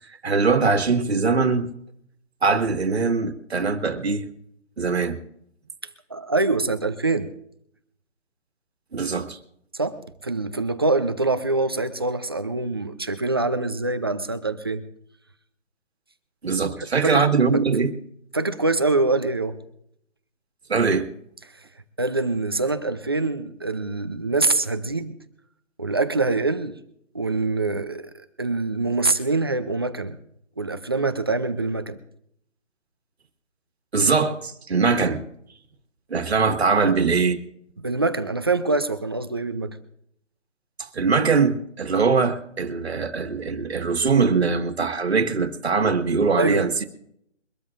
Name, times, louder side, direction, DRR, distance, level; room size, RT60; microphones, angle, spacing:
voice 1, 0.2-1.7 2.4-4.3 4.8-5.2 8.9-9.4 16.4-17.9 20.7-21.1 33.9-35.2 36.1-37.4 40.9-46.8, right 4 dB, 60° right, 1.8 m, -22 dB
voice 2, 6.1-7.3 9.7-14.8 17.0-17.2 17.5-17.6 18.3-19.6 22.0-25.2 25.8-26.8 27.1-30.2 30.6-32.0 37.8-39.8 46.4-46.7, right 3 dB, 20° right, 0.6 m, -24 dB
23.5 x 13.0 x 2.5 m
figure-of-eight pair, 155°, 36 cm